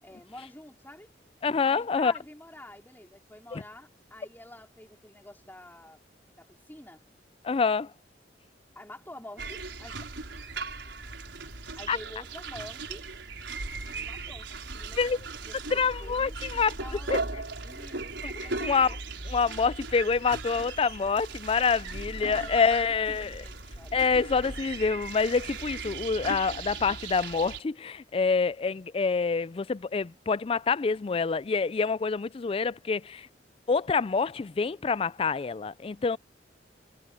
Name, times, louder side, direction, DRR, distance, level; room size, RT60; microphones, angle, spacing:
voice 1, 0.0-1.1 1.6-6.0 6.3-7.0 8.7-10.5 11.8-13.1 13.9-19.0 22.2-24.1, left 1 dB, 10° left, 4.3 m, -48 dB
voice 2, 1.4-2.1 3.5-3.6 7.4-7.9 11.9-12.0 15.0-15.2 15.7-16.7 17.1-17.2 18.6-19.0 19.3-23.4 23.9-33.3 33.7-36.2, left 5 dB, 30° left, 0.4 m, -26 dB
sound 1, 9.4-27.6, right 3 dB, 85° right, 4.7 m, -38 dB
head